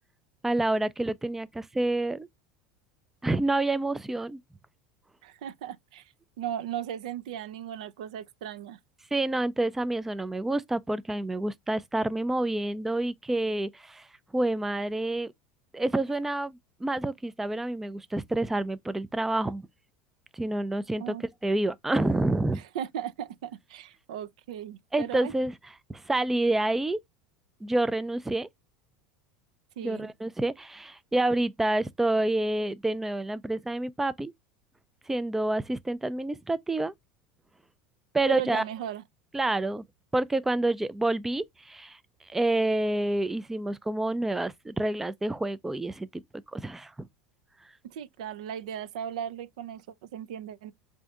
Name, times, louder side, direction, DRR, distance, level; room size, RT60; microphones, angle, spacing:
voice 1, 0.4-2.3 3.2-4.4 9.1-14.1 14.3-15.3 15.7-19.7 20.4-21.1 21.4-22.6 24.9-25.5 25.9-27.0 27.6-28.5 29.8-34.3 35.1-36.9 38.1-38.6 39.3-39.8 40.1-42.0 42.3-46.1 46.5-47.1, right 2 dB, 10° right, 0.3 m, -28 dB
voice 2, 5.2-8.8 20.9-21.2 22.5-25.3 29.8-30.1 38.3-39.0 47.8-50.7, right 10 dB, 80° right, 0.4 m, -37 dB
3.4 x 2.6 x 3.4 m
supercardioid pair, 105°, 4 cm